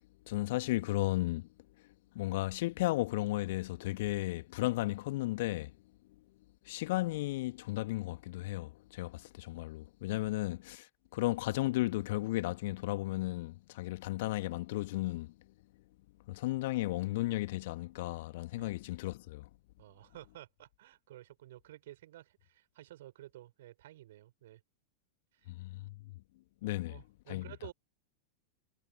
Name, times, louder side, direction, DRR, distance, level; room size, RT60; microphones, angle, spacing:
voice 1, 0.3-1.5 2.1-5.7 6.7-10.9 11.1-15.3 16.3-19.5 25.5-26.2 26.6-27.0 27.3-27.4, left 18 dB, 50° left, 2.2 m, -34 dB
voice 2, 19.8-24.6 25.3-25.5 26.7-27.7, right 14 dB, 55° right, 6.7 m, -52 dB
figure-of-eight pair, 90°, 0 cm